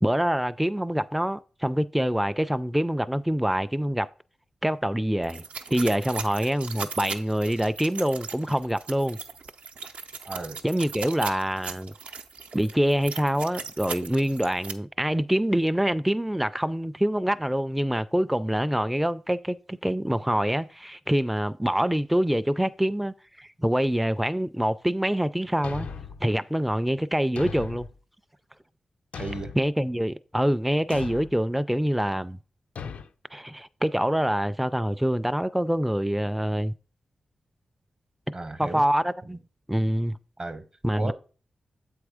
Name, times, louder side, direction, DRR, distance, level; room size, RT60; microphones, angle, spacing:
voice 1, 0.0-4.1 4.6-5.4 5.7-9.2 10.6-11.9 12.5-25.9 26.2-27.9 29.6-32.4 33.3-36.7 38.3-39.4 39.7-40.2 40.8-41.1, equal, 5° right, 0.3 m, -25 dB
sound 1, 5.2-14.7, right 5 dB, 75° right, 0.6 m, -38 dB
voice 2, 10.3-10.6 29.2-29.5 38.3-38.9 40.4-40.7 40.9-41.1, right 2 dB, 40° right, 0.8 m, -34 dB
Thump thud, 25.6-26.3 27.4-27.9 29.1-29.7 30.9-31.3 32.8-33.1, left 5 dB, 85° left, 0.4 m, -37 dB
7.7 x 3.6 x 4.8 m
cardioid pair, 65°, 2 cm